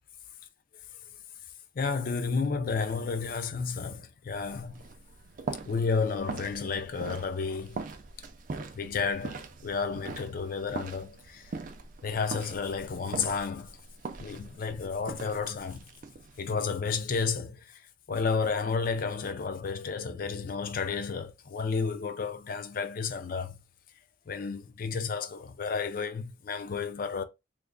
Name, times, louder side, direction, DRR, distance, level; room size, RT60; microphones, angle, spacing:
voice 1, 1.8-4.8 5.6-7.8 8.7-11.5 12.0-13.8 14.2-15.8 16.4-17.8 18.1-23.6 24.3-27.2, left 5 dB, 45° left, 0.4 m, -31 dB
sound 1, 4.3-16.5, right 4 dB, 40° right, 0.4 m, -42 dB
3.3 x 2.0 x 3.7 m
head